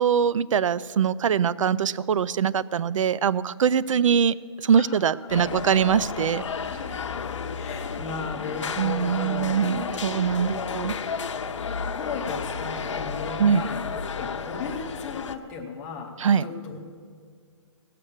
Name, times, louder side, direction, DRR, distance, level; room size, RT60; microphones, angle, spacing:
voice 1, 0.0-6.4 8.8-10.9 13.4-13.7 16.2-16.5, right 7 dB, 80° right, 19 dB, 0.4 m, -23 dB
voice 2, 4.7-5.6 7.6-9.9 10.4-10.8 11.5-16.1 16.4-16.8, left 5 dB, 5° left, -1 dB, 0.5 m, -36 dB
sound 1, 5.3-15.3, left 5 dB, 70° left, 0.8 m, -32 dB
18.0 x 6.7 x 7.1 m, 2.1 s
hypercardioid pair, 175°, 16 cm